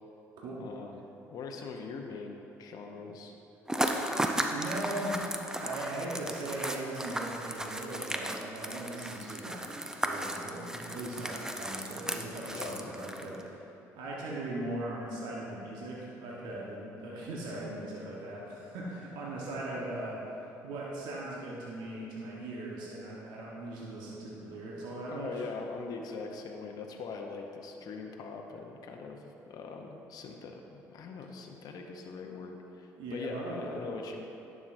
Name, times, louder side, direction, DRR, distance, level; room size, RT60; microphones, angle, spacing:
voice 1, 0.6-1.0 1.3-3.3 12.4-12.9 25.1-34.3, left 4 dB, 55° left, 2 dB, 0.7 m, -42 dB
sound 1, 3.7-13.4, right 1 dB, 10° right, 0.6 m, -35 dB
voice 2, 4.5-5.3 5.6-13.7 13.9-20.2 20.6-25.4 33.0-33.8, right 1 dB, 70° right, -5 dB, 1.1 m, -39 dB
11.0 x 6.2 x 2.6 m, 2.9 s
hypercardioid pair, 60°, 8 cm